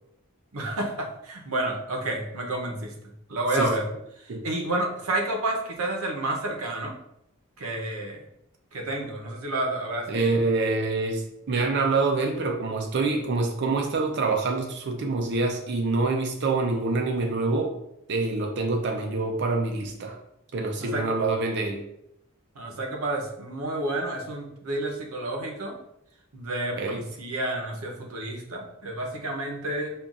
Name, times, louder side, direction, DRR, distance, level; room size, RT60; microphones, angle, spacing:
voice 1, 0.5-2.9 3.3-3.8 4.4-6.9 7.6-8.2 8.7-10.2 20.8-21.2 22.6-25.8 26.3-29.9, right 1 dB, 85° right, 1 dB, 0.7 m, -30 dB
voice 2, 10.1-17.7 18.1-20.2 20.5-21.8 26.8-27.0, right 3 dB, 50° right, 3 dB, 0.4 m, -26 dB
5.5 x 2.3 x 2.4 m, 0.79 s
head